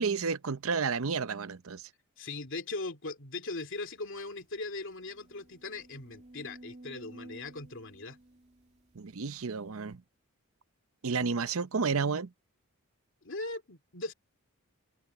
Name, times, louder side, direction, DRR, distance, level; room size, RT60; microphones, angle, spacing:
voice 1, 0.0-1.8 8.9-10.0 11.0-12.3, right 5 dB, 65° right, 0.7 m, -31 dB
voice 2, 2.2-8.2 13.2-14.1, left 3 dB, 55° left, 2.9 m, -39 dB
sound 1, 3.9-4.0 4.4-4.5 5.0-9.3 9.9-10.0, right 1 dB, 30° right, 2.5 m, -53 dB
open air
head